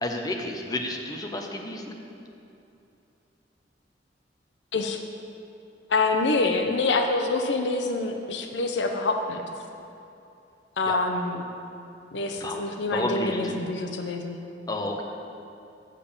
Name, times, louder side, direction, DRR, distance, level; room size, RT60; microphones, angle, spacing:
voice 1, 0.0-2.0 10.8-11.0 12.4-12.6 12.9-13.6 14.7-15.0, left 1 dB, 20° left, 2 dB, 0.8 m, -31 dB
voice 2, 5.9-9.4 10.8-11.5 12.1-14.4, left 3 dB, 70° left, 4 dB, 0.7 m, -26 dB
7.6 x 6.7 x 7.0 m, 2.8 s
head